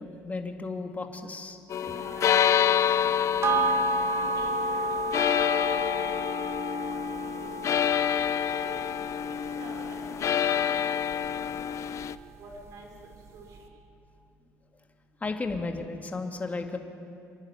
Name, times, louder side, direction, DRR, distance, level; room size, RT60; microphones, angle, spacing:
voice 1, 0.0-1.6 15.2-16.8, left 3 dB, 25° left, 4 dB, 2.2 m, -34 dB
sound 1, 1.7-12.1, left 9 dB, 50° left, 0.6 m, -27 dB
voice 2, 1.8-3.6 4.1-4.5 4.8-6.4 6.9-7.0 7.3-7.7 8.1-8.9 9.6-10.8 11.1-12.0 12.4-12.9 13.3-13.6, right 2 dB, 65° right, 1 dB, 5.7 m, -48 dB
sound 2, 3.4-12.2 12.5-12.6, right 3 dB, 45° right, 1.9 m, -32 dB
27.0 x 11.5 x 9.4 m, 2.6 s
supercardioid pair, 90°, 7 cm